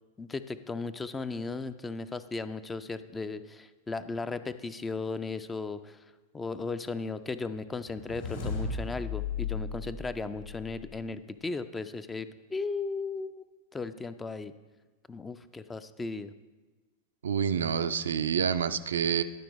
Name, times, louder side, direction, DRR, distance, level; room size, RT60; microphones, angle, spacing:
voice 1, 0.2-6.0 6.3-13.4 13.7-14.5 15.1-16.3, left 3 dB, 15° left, 12 dB, 0.3 m, -36 dB
sound 1, 7.8-11.0, left 5 dB, 70° left, 1.7 m, -36 dB
voice 2, 17.2-19.2, right 7 dB, 65° right, 11 dB, 0.3 m, -28 dB
11.0 x 4.4 x 5.1 m, 1.3 s
figure-of-eight pair, 90°, 0 cm